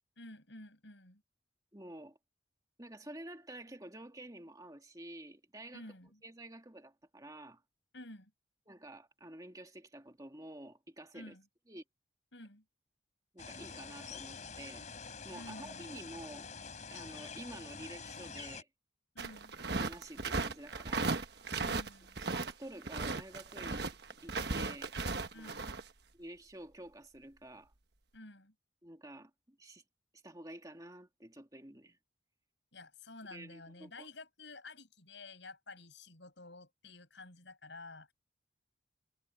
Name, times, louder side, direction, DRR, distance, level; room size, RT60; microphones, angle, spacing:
voice 1, 0.2-1.2 5.7-6.2 7.9-8.3 11.1-11.5 12.3-12.6 15.3-15.9 19.1-19.6 21.6-22.2 25.3-25.7 28.1-28.5 32.7-38.1, left 2 dB, 65° left, 7.0 m, -51 dB
voice 2, 1.7-2.2 2.8-5.9 6.2-7.6 8.7-11.4 11.7-11.8 13.3-14.9 15.2-16.5 16.9-18.7 19.8-21.4 22.3-23.9 24.2-25.0 25.3-25.6 26.1-27.7 28.8-29.8 30.2-32.0 33.3-34.1, right 1 dB, 20° right, 2.3 m, -50 dB
sound 1, 13.4-18.6, left 5 dB, 40° left, 3.9 m, -47 dB
sound 2, 19.2-22.5 22.8-25.8, right 3 dB, 55° right, 1.2 m, -36 dB
head